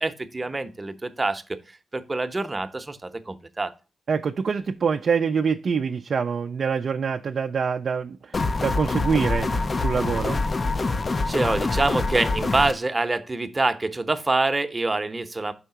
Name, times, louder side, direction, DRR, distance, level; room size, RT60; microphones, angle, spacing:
voice 1, 0.0-3.7 11.3-15.5, right 2 dB, 25° right, 0.8 m, -26 dB
voice 2, 4.1-8.3 8.6-9.5 9.8-10.4, right 6 dB, 60° right, 0.4 m, -25 dB
sound 1, 8.3-12.7, left 3 dB, 40° left, 0.4 m, -25 dB
5.6 x 3.5 x 5.7 m
cardioid pair, 70°, 0 cm